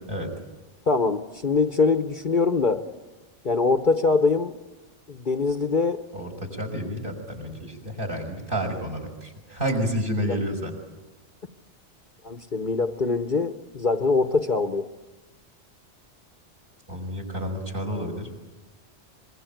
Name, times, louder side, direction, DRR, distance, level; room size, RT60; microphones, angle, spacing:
voice 1, 0.9-2.8 3.4-4.5 5.1-6.0 10.3-10.4 12.2-14.9, left 4 dB, 45° left, 8 dB, 1.1 m, -23 dB
voice 2, 6.1-10.7 16.9-18.3, equal, 45° right, 4 dB, 6.0 m, -30 dB
24.5 x 22.5 x 9.2 m, 1.1 s
omnidirectional pair, 1.2 m